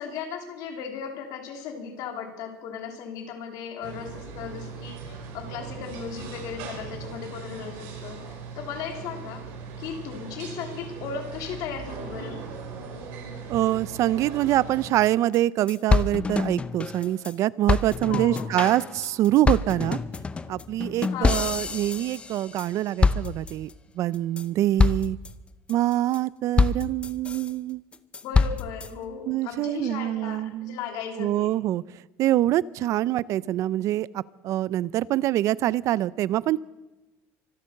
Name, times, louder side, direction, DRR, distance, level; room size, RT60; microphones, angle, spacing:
voice 1, 0.0-9.4 9.8-12.4 18.1-18.9 21.1-21.6 28.2-31.6, left 7 dB, 65° left, 4 dB, 3.0 m, -36 dB
sound 1, 3.8-14.9, right 5 dB, 90° right, 5.3 m, -39 dB
voice 2, 13.5-20.0 20.5-23.7 24.0-25.2 25.7-27.8 29.3-30.8 31.2-31.8 32.2-36.6, right 14 dB, 50° right, 21 dB, 0.4 m, -25 dB
sound 2, 15.0-15.1 15.3-15.4 15.7-17.3 17.7-22.7 23.0-23.7 24.1-24.4 24.8-25.3 25.7-26.2 26.6-27.5 27.9-28.9, left 4 dB, 15° left, 0.6 m, -25 dB
24.5 x 8.5 x 6.5 m, 1.1 s
cardioid pair, 150°, 7 cm